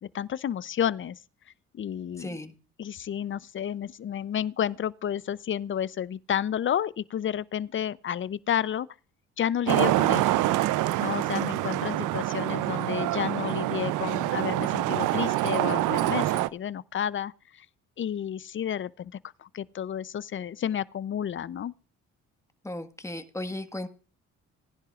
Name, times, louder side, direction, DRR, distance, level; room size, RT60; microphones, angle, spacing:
voice 1, 0.0-1.2 1.7-2.4 2.8-8.9 9.4-10.4 11.0-17.7 18.0-19.1 19.4-21.7, left 9 dB, 40° left, 0.6 m, -31 dB
voice 2, 2.2-2.5 11.4-11.5 11.9-12.1 22.6-23.9, left 1 dB, 10° left, 1.5 m, -36 dB
Traffic noise roadway noise, 9.7-16.5, right 16 dB, 85° right, 0.5 m, -26 dB
19.0 x 10.5 x 2.4 m
cardioid pair, 90°, 30 cm